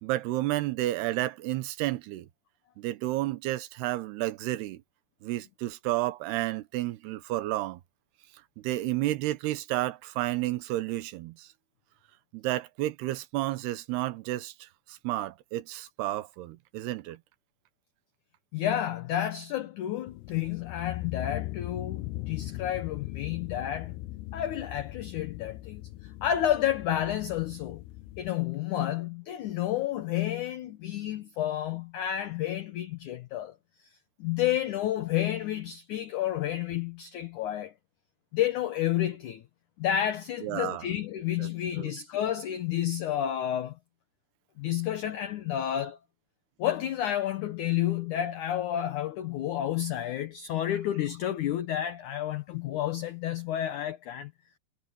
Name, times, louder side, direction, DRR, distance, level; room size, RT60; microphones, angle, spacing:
voice 1, 0.0-2.3 2.8-4.8 5.2-7.8 8.6-11.5 12.3-17.2 40.4-40.9 41.4-41.5 41.8-41.9, right 16 dB, 80° right, 3.1 m, -31 dB
voice 2, 18.5-24.0 24.3-27.8 28.2-33.6 34.2-37.7 38.3-39.4 39.8-43.8 44.6-46.0 46.6-54.3, left 11 dB, 70° left, 2.0 m, -30 dB
sound 1, 20.1-28.3, left 17 dB, 90° left, 2.7 m, -39 dB
omnidirectional pair, 4.6 m